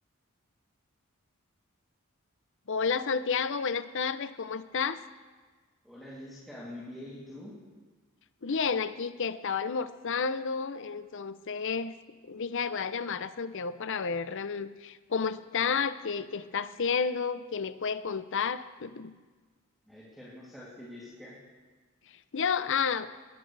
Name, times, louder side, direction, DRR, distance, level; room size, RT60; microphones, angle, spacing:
voice 1, 2.7-5.0 8.4-11.9 12.2-19.2 22.1-23.1, left 5 dB, 60° left, 13 dB, 0.7 m, -31 dB
voice 2, 5.8-7.5 19.9-21.4, left 1 dB, ahead, -9 dB, 2.9 m, -45 dB
21.0 x 16.5 x 3.4 m, 1.4 s
head